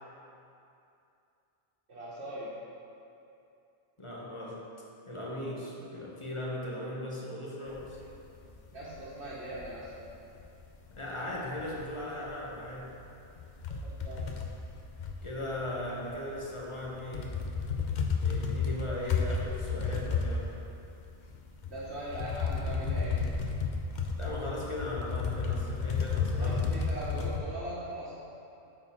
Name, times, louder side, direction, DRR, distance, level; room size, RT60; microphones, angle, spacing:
voice 1, 1.9-2.6 8.0-8.1 8.7-9.9 13.7-14.4 21.7-23.3 26.4-28.1, right 1 dB, 85° right, -8 dB, 1.4 m, -40 dB
voice 2, 4.0-4.7 5.1-8.0 10.9-13.0 15.2-17.4 17.8-17.9 18.2-20.5 24.2-26.7, left 1 dB, 30° left, -4 dB, 0.9 m, -38 dB
sound 1, 7.7-10.1 10.4-11.0 11.3-16.1 16.4-27.4, left 5 dB, 55° left, 0.6 m, -33 dB
8.5 x 4.1 x 4.3 m, 2.7 s
omnidirectional pair, 1.1 m